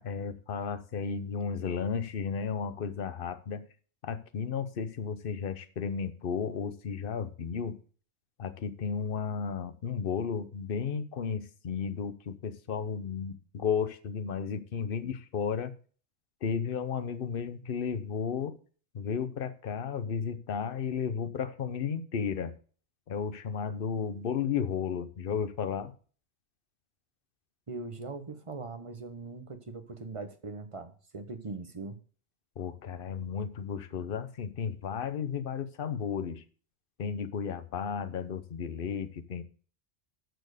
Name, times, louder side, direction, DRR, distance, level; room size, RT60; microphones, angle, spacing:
voice 1, 0.0-3.6 4.0-7.8 8.4-15.7 16.4-18.6 18.9-22.5 23.1-25.9 32.6-36.4 37.0-39.4, left 6 dB, 55° left, 12 dB, 1.0 m, -33 dB
voice 2, 27.7-32.0, right 3 dB, 30° right, 8 dB, 1.1 m, -41 dB
13.0 x 4.4 x 6.6 m, 0.41 s
omnidirectional pair, 1.2 m